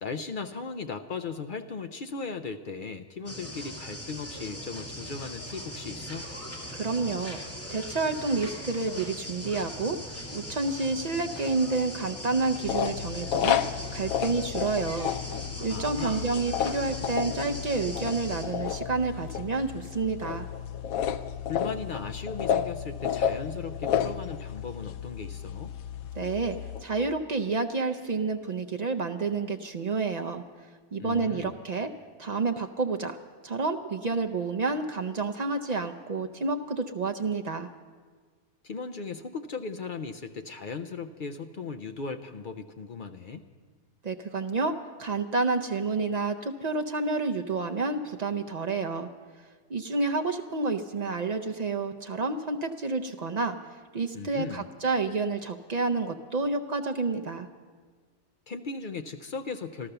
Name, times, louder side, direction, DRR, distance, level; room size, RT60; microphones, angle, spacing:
voice 1, 0.0-6.3 15.7-16.3 21.5-25.7 31.0-31.6 38.6-43.4 54.1-54.7 58.5-59.9, left 4 dB, 55° left, 8 dB, 0.5 m, -37 dB
sound 1, 3.3-18.5, left 1 dB, 10° left, 2.1 m, -40 dB
voice 2, 6.7-7.4 7.7-15.1 15.6-20.5 26.2-30.4 30.9-31.9 32.2-33.2 33.4-37.7 44.0-49.1 49.7-53.6 53.9-57.5, right 3 dB, 70° right, 5 dB, 0.4 m, -29 dB
sound 2, 12.6-26.8, left 9 dB, 75° left, 1.0 m, -32 dB
13.5 x 13.0 x 6.7 m, 1.5 s
omnidirectional pair, 1.5 m